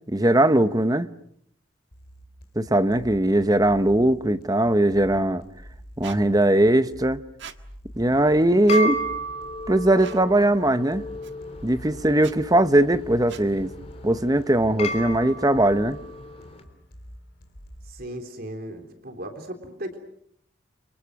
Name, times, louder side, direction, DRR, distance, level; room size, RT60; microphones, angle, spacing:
voice 1, 0.1-1.1 2.6-5.4 6.0-7.2 8.0-9.0 9.7-11.0 11.6-13.7 14.0-16.0, right 1 dB, 20° right, 1.0 m, -20 dB
sound 1, 1.9-17.9, equal, 55° left, 3.9 m, -47 dB
Squeak, 6.0-6.2 7.4-7.6 8.6-8.9 10.0-10.2 11.2-11.3 12.1-12.4 13.3-13.5, right 7 dB, 70° right, 1.6 m, -41 dB
sound 2, 8.1-16.6, equal, 35° left, 3.3 m, -33 dB
voice 2, 17.9-20.0, right 1 dB, 50° right, 3.6 m, -36 dB
30.0 x 26.5 x 6.3 m
head